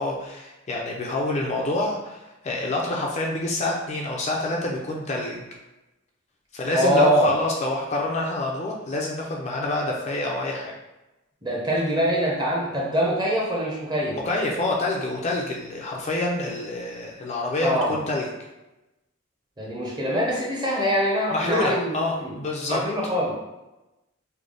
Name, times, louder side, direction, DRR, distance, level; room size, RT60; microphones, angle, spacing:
voice 1, 0.0-5.4 6.5-10.7 14.2-18.3 21.3-22.8, left 2 dB, 35° left, -1 dB, 0.4 m, -27 dB
voice 2, 6.7-7.3 11.4-14.2 17.6-17.9 19.6-22.3 22.7-23.3, equal, 20° right, -3 dB, 0.7 m, -23 dB
3.3 x 2.0 x 3.8 m, 1.0 s
head